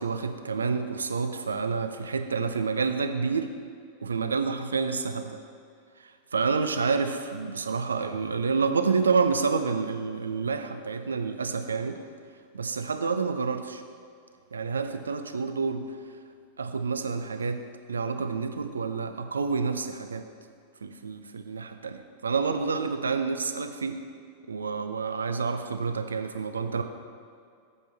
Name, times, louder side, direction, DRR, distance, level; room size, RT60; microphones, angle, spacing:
voice 1, 0.0-3.5 4.0-5.4 6.3-12.0 12.5-13.8 14.5-15.9 16.6-17.6 17.9-20.3 20.8-24.0 24.5-26.8, right 5 dB, 75° right, 8 dB, 0.5 m, -28 dB
9.5 x 7.6 x 3.4 m, 2.3 s
figure-of-eight pair, 90°, 0 cm